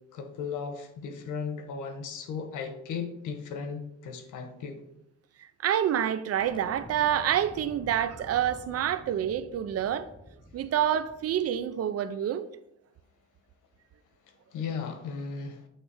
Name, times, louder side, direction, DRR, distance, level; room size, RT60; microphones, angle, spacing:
voice 1, 0.1-4.8 14.5-15.6, left 5 dB, 85° left, 1.0 m, -36 dB
voice 2, 5.4-10.1 10.5-12.5, right 10 dB, 55° right, 0.5 m, -27 dB
sound 1, 6.4-11.7, left 1 dB, 15° left, 0.7 m, -49 dB
8.6 x 3.3 x 4.7 m
cardioid pair, 90°, 30 cm